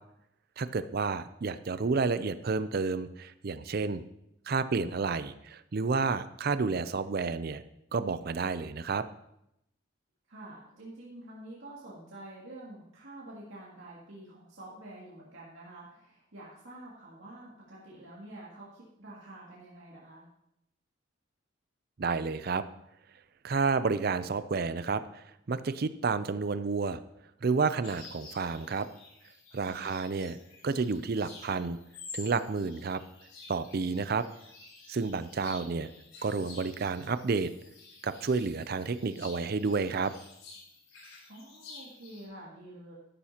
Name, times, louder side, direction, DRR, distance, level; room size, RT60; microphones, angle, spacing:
voice 1, 0.6-4.0 4.5-7.6 7.9-9.0 22.0-22.6 23.4-27.0 27.4-28.9 29.5-30.4 30.6-31.8 32.1-33.0 33.5-34.2 34.9-35.9 36.2-37.5 38.0-40.1, right 4 dB, 50° right, 13 dB, 0.5 m, -30 dB
voice 2, 10.3-20.3 29.6-29.9 41.3-42.9, right 1 dB, 65° right, -6 dB, 2.3 m, -48 dB
sound 1, 27.8-42.2, left 4 dB, 70° left, 4.3 m, -51 dB
12.5 x 10.5 x 2.9 m, 0.81 s
head